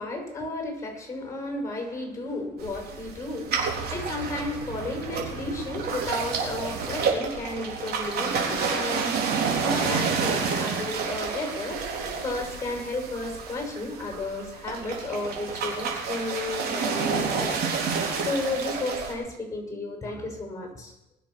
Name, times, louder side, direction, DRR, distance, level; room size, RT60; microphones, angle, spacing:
voice 1, 0.0-17.6 18.2-20.9, left 2 dB, 20° left, 3 dB, 6.6 m, -33 dB
sound 1, 2.6-19.1, right 5 dB, 65° right, 3.7 m, -29 dB
21.0 x 7.2 x 6.4 m, 0.85 s
cardioid pair, 110°, 17 cm